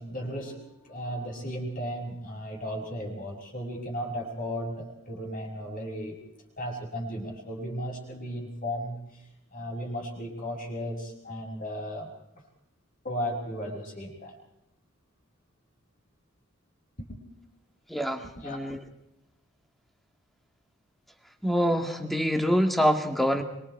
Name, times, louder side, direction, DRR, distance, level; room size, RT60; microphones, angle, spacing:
voice 1, 0.0-6.2 6.6-12.1 13.0-14.3 17.0-17.2 18.4-18.6, equal, 40° left, -5 dB, 5.9 m, -35 dB
voice 2, 17.9-18.8 21.4-23.4, equal, ahead, 5 dB, 1.9 m, -25 dB
25.5 x 25.0 x 4.7 m, 0.87 s
head